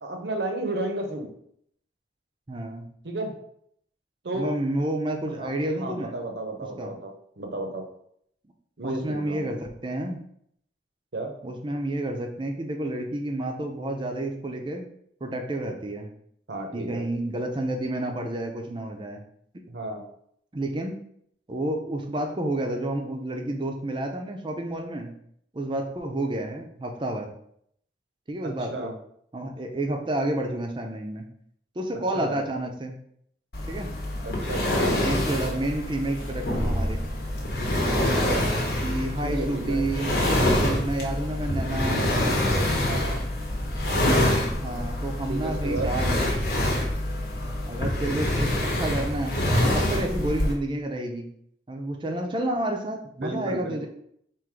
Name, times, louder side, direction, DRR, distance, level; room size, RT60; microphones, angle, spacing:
voice 1, 0.0-1.3 3.0-3.3 4.2-4.5 5.3-5.5 5.8-7.9 8.8-9.5 11.1-11.3 16.5-17.0 19.7-20.0 28.4-28.9 32.1-32.4 34.2-35.0 38.0-38.5 39.2-39.8 42.8-43.2 45.3-45.9 53.2-53.9, right 2 dB, 70° right, 3 dB, 0.8 m, -33 dB
voice 2, 2.5-2.9 4.3-6.2 6.6-6.9 8.8-10.2 11.4-14.9 15.2-16.1 16.7-19.2 19.5-19.6 20.5-21.0 21.5-25.1 25.5-27.3 28.3-28.9 29.3-31.3 31.8-33.0 33.7-33.9 35.0-37.0 38.8-40.1 40.5-42.5 44.6-46.4 47.7-51.3 51.7-53.9, right 1 dB, 25° right, 3 dB, 0.5 m, -30 dB
sound 1, 33.5-50.5, left 1 dB, 60° left, 1.0 m, -26 dB
3.7 x 2.5 x 4.6 m, 0.70 s
head